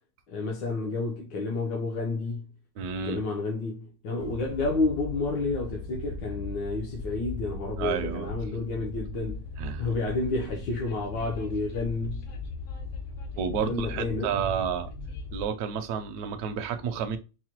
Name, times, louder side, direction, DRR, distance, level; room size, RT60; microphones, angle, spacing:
voice 1, 0.3-2.5 3.0-9.5 9.8-12.3 13.5-14.4, left 3 dB, 80° left, 1.4 m, -30 dB
voice 2, 2.8-3.2 7.8-8.3 9.6-9.9 13.4-14.9 15.3-17.2, right 7 dB, 70° right, 0.9 m, -30 dB
Train, 4.2-15.4, left 3 dB, 65° left, 0.8 m, -38 dB
4.7 x 2.1 x 2.8 m
omnidirectional pair, 2.0 m